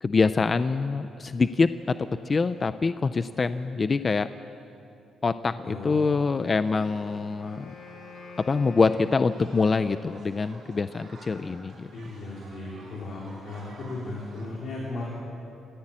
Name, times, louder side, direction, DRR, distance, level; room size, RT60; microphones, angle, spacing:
voice 1, 0.0-4.3 5.2-7.7 8.5-11.9, left 4 dB, 25° left, 11 dB, 0.5 m, -25 dB
voice 2, 5.6-6.0 11.9-15.1, left 2 dB, 45° left, -4 dB, 3.9 m, -36 dB
sound 1, 6.3-14.5, right 2 dB, 50° right, 8.0 m, -52 dB
Wind instrument woodwind instrument, 6.7-10.0, left 4 dB, 75° left, 3.9 m, -47 dB
29.0 x 15.0 x 8.8 m, 2.7 s
cardioid pair, 165°, 0 cm